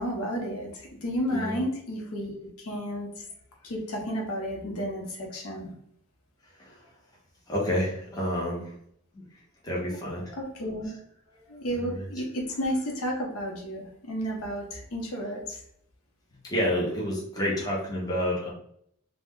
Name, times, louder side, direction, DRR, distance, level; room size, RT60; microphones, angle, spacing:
voice 1, 0.0-3.3 3.6-5.7 10.3-11.0 11.3-15.6, equal, 75° left, 0 dB, 0.7 m, -32 dB
voice 2, 1.3-1.6 6.4-6.9 7.5-8.8 9.1-9.2 9.6-10.3 11.7-12.1 16.4-18.5, equal, 15° left, -5 dB, 0.7 m, -29 dB
2.4 x 2.1 x 3.6 m, 0.69 s
head